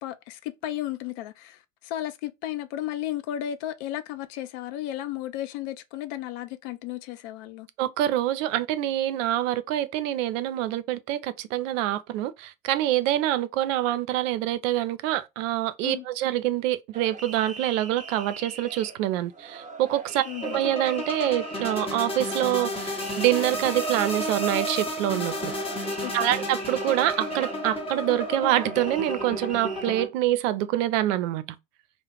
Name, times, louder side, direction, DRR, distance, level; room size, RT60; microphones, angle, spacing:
voice 1, 0.0-7.7 15.8-16.0 20.3-20.6 26.0-26.4, left 12 dB, 65° left, 0.5 m, -34 dB
voice 2, 7.8-25.5 26.1-31.4, right 13 dB, 70° right, 0.5 m, -26 dB
sound 1, 16.9-30.0, right 4 dB, 20° right, 0.7 m, -41 dB
sound 2, 20.4-30.1, equal, 15° left, 0.8 m, -32 dB
2.4 x 2.1 x 3.0 m
hypercardioid pair, 80°, 40 cm